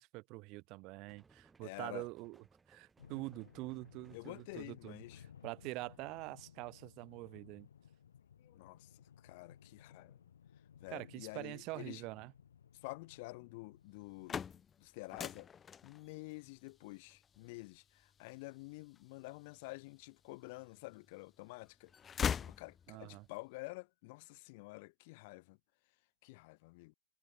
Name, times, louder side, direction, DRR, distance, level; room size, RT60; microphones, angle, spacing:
voice 1, 0.0-2.4 2.7-5.0 5.4-7.7 10.9-12.3 22.9-23.3, right 23 dB, 40° right, 1.8 m, -45 dB
sound 1, 1.1-6.5, right 4 dB, 15° right, 2.8 m, -69 dB
voice 2, 1.6-2.1 4.1-5.2 8.4-10.2 10.8-12.0 12.8-14.4 14.8-15.5 15.8-25.6 26.2-26.9, left 25 dB, 50° left, 1.0 m, -49 dB
sound 2, 3.0-14.5, left 8 dB, 65° left, 2.1 m, -60 dB
sound 3, 14.0-19.9 20.5-21.3 21.6-23.2, left 7 dB, 20° left, 0.3 m, -42 dB
figure-of-eight pair, 90°, 0 cm